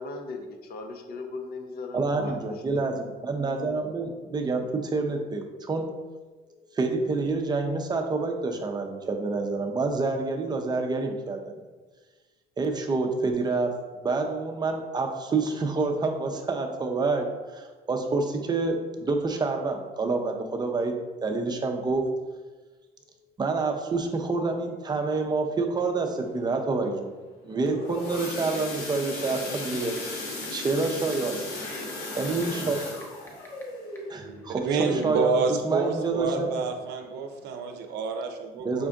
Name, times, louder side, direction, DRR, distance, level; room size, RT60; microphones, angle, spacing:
voice 1, 0.0-2.9, left 3 dB, 65° left, 4 dB, 0.7 m, -38 dB
voice 2, 1.9-5.9 6.7-11.6 12.6-13.7 14.0-17.3 17.5-20.9 21.2-22.0 23.4-27.1 27.4-31.4 32.2-32.8 34.1-35.4 35.6-36.5 38.6-38.9, right 3 dB, 25° right, 3 dB, 0.5 m, -28 dB
sound 1, 27.5-36.2 36.6-36.8 37.1-37.2 37.7-37.8, left 2 dB, 85° left, 1.2 m, -37 dB
sound 2, 30.0-30.1 30.4-30.8 31.1-31.2 31.9-33.6 34.0-34.1 34.9-35.0, equal, 15° left, 0.7 m, -47 dB
voice 3, 34.6-38.9, right 4 dB, 85° right, 5 dB, 0.5 m, -28 dB
5.2 x 2.5 x 3.5 m, 1.3 s
cardioid pair, 110°, 17 cm